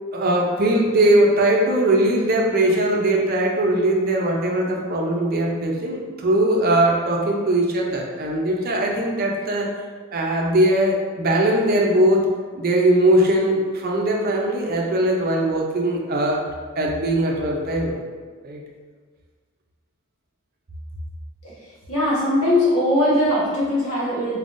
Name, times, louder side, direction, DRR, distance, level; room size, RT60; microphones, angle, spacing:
voice 1, 0.1-9.7 10.1-12.3 12.6-16.4 16.8-18.0 18.4-18.6, right 1 dB, 45° right, -1 dB, 0.6 m, -20 dB
voice 2, 21.9-24.4, left 1 dB, 75° left, -7 dB, 1.4 m, -20 dB
4.2 x 3.6 x 2.6 m, 1.5 s
head